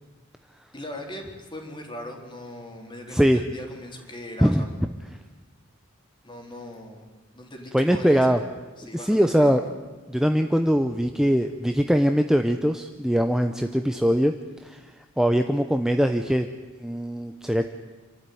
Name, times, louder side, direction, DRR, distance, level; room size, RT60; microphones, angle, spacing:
voice 1, 0.7-4.7 6.2-7.1 7.3-8.4 8.8-9.7, left 1 dB, 25° left, 2 dB, 3.8 m, -39 dB
voice 2, 7.7-8.4 8.9-9.6 10.1-14.4 14.6-14.8 15.2-16.5 16.8-17.7, equal, 5° right, 6 dB, 0.7 m, -21 dB
27.5 x 12.5 x 9.4 m, 1.3 s
head